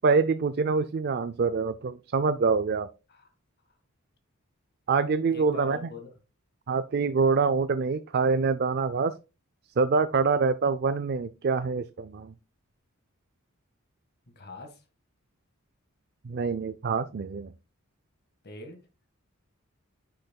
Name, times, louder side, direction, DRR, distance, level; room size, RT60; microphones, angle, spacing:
voice 1, 0.0-2.9 4.9-5.8 6.7-9.1 9.8-12.3 16.2-17.5, right 4 dB, 50° right, 0.4 m, -25 dB
voice 2, 5.3-6.1 14.3-14.8 18.4-18.8, left 2 dB, 50° left, 1.6 m, -43 dB
10.0 x 6.5 x 2.3 m
head